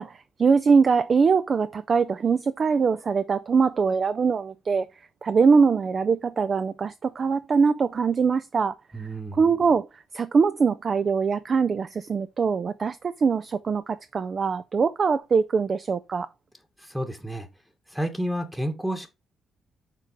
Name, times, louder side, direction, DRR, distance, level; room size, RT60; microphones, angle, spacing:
voice 1, 0.0-4.9 5.2-8.7 9.3-16.3, right 5 dB, 45° right, 0.4 m, -22 dB
voice 2, 8.9-9.4 16.8-17.5 17.9-19.1, right 1 dB, 5° right, 1.2 m, -30 dB
6.6 x 3.8 x 4.7 m
cardioid pair, 90°, 0 cm